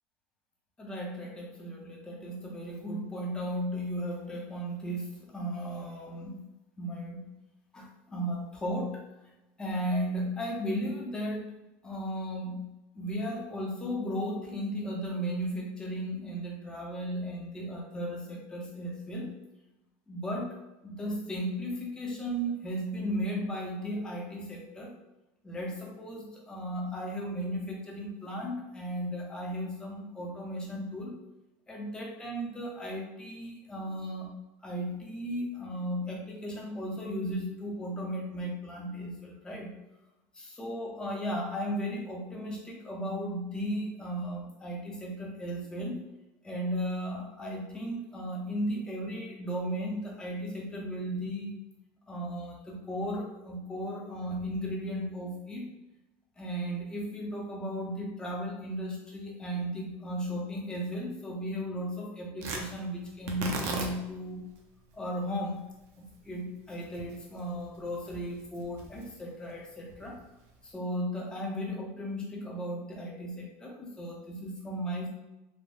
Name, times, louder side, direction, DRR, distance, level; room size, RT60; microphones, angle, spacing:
voice 1, 0.8-6.5 6.8-7.3 7.7-9.0 9.6-11.5 11.8-19.3 20.1-20.5 20.8-24.9 25.4-31.1 31.7-34.4 34.6-39.8 40.4-46.0 46.4-51.5 52.1-55.7 56.4-64.4 64.9-65.6 66.0-70.2 70.6-75.1, equal, 10° left, -1 dB, 0.5 m, -35 dB
Tearing, 62.4-70.7, right 3 dB, 50° right, 0.5 m, -41 dB
3.3 x 2.2 x 2.5 m, 1.0 s
cardioid pair, 160°, 7 cm